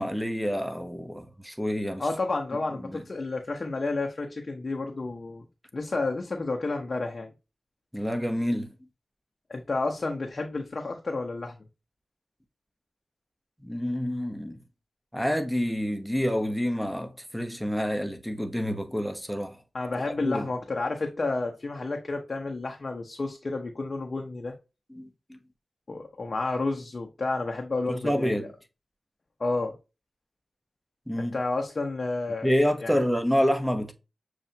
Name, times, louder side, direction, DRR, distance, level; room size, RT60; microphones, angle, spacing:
voice 1, 0.0-2.0 2.8-3.0 7.9-8.7 13.6-14.6 15.1-19.6 20.2-20.5 24.9-25.4 27.9-28.5 31.1-31.4 32.4-33.9, equal, ahead, 0.9 m, -28 dB
voice 2, 2.0-5.4 5.7-7.3 9.5-11.6 19.7-24.5 25.9-28.4 29.4-29.8 31.2-32.5 32.8-32.9, left 3 dB, 50° left, 0.8 m, -30 dB
6.6 x 2.5 x 2.8 m
cardioid pair, 40°, 0 cm